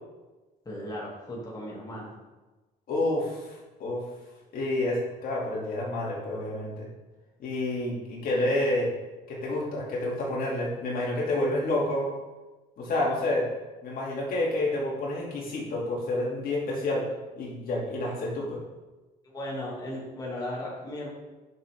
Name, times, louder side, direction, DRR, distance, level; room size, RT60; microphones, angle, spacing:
voice 1, 0.6-2.1 19.2-21.1, left 1 dB, 20° left, -5 dB, 2.6 m, -36 dB
voice 2, 2.9-4.0 4.5-6.9 7.4-8.9 9.3-12.1 12.8-13.5 13.8-17.1 17.4-18.6, left 1 dB, 60° left, -4 dB, 2.7 m, -29 dB
9.5 x 6.1 x 3.7 m, 1.2 s
cardioid pair, 110°, 17 cm